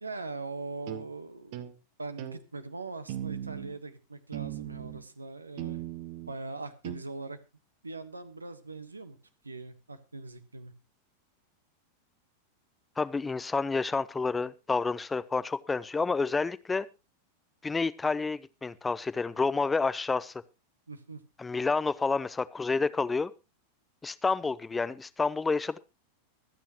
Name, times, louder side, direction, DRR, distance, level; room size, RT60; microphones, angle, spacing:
voice 1, 0.0-1.7 2.0-5.8 6.3-7.4 7.8-9.2 9.4-10.7 20.9-21.2, right 3 dB, 80° right, 12 dB, 1.3 m, -41 dB
sound 1, 0.9-1.1 1.5-1.7 2.2-2.4 3.1-3.7 4.3-5.0 5.6-6.3 6.8-7.0, right 12 dB, 50° right, 1.2 m, -38 dB
voice 2, 13.0-16.9 17.6-20.3 21.4-23.3 24.0-25.8, left 4 dB, 10° left, 18 dB, 0.5 m, -29 dB
24.0 x 8.8 x 3.0 m, 0.27 s
figure-of-eight pair, 90°, 0 cm